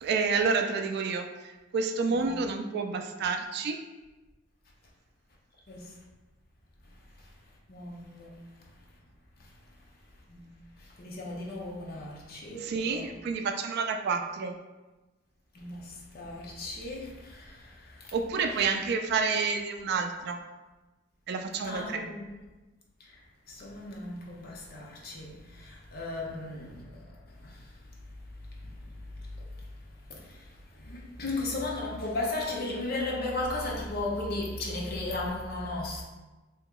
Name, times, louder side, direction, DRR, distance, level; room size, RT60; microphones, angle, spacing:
voice 1, 0.0-3.8 12.6-14.5 18.1-20.4 21.3-22.1, right 4 dB, 55° right, 0.3 m, -29 dB
voice 2, 7.7-8.3 10.3-10.5 11.0-13.1 15.5-17.6 18.5-18.7 21.6-22.3 23.5-25.3 25.6-27.0 30.1-30.3 30.8-36.0, left 2 dB, 50° left, 0.7 m, -35 dB
2.8 x 2.8 x 3.6 m
head